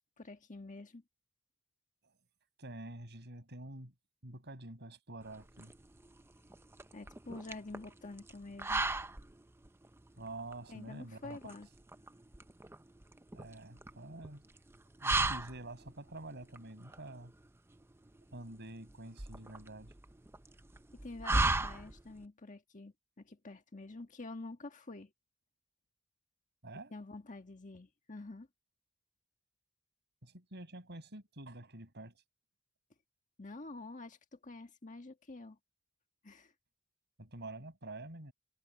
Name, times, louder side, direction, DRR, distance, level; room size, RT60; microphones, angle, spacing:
voice 1, 0.2-1.0 6.9-8.8 10.7-11.7 20.9-25.1 26.9-28.5 33.4-35.6 36.2-36.5, left 2 dB, 35° left, 1.5 m, -48 dB
voice 2, 2.6-3.9 4.2-5.7 10.2-11.4 13.3-14.4 15.0-17.3 18.3-19.9 26.6-26.9 30.2-32.2 37.2-38.3, right 2 dB, 50° right, 6.3 m, -47 dB
sound 1, 5.2-22.3, right 2 dB, 10° right, 0.5 m, -38 dB
head